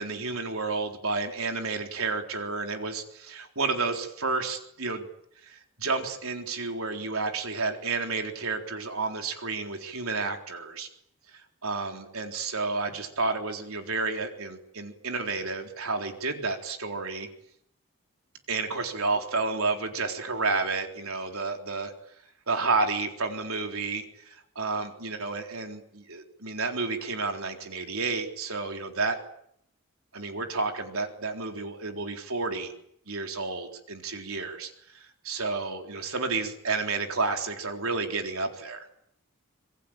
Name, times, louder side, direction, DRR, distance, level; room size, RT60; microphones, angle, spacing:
voice 1, 0.0-5.1 5.4-10.9 11.3-17.3 18.5-21.9 22.5-29.2 30.1-32.7 33.1-38.9, right 3 dB, 75° right, 4 dB, 3.9 m, -31 dB
27.0 x 22.5 x 9.0 m, 0.71 s
head